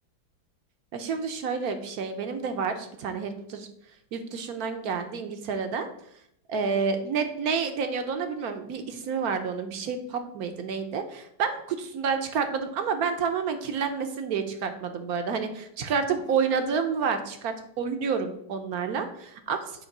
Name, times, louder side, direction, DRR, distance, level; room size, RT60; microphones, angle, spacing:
voice 1, 0.9-3.7 4.1-5.9 6.5-19.6, right 6 dB, 65° right, 7 dB, 1.0 m, -29 dB
8.1 x 3.2 x 5.9 m, 0.72 s
omnidirectional pair, 2.1 m